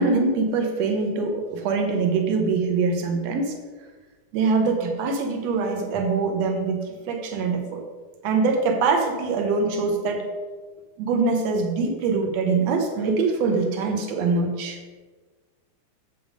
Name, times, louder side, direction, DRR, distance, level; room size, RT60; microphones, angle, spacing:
voice 1, 0.0-3.5 4.3-7.8 8.2-10.3 11.0-14.8, right 4 dB, 70° right, 4 dB, 1.7 m, -23 dB
7.5 x 7.2 x 5.1 m, 1.4 s
omnidirectional pair, 4.2 m